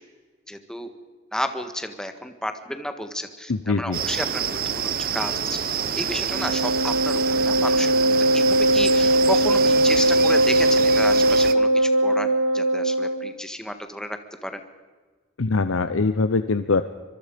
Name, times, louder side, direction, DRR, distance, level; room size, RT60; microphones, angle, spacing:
voice 1, 0.5-0.9 1.3-5.6 6.0-8.0 8.3-8.4 8.7-12.3 12.5-14.6, equal, 5° left, 7 dB, 1.5 m, -32 dB
voice 2, 3.5-4.0 15.4-16.8, left 3 dB, 80° left, 11 dB, 0.8 m, -22 dB
sound 1, 3.9-11.5, right 8 dB, 45° right, 0.9 m, -28 dB
Wind instrument woodwind instrument, 6.3-13.3, right 1 dB, 80° right, 1.0 m, -20 dB
25.0 x 23.0 x 5.2 m, 1.4 s
head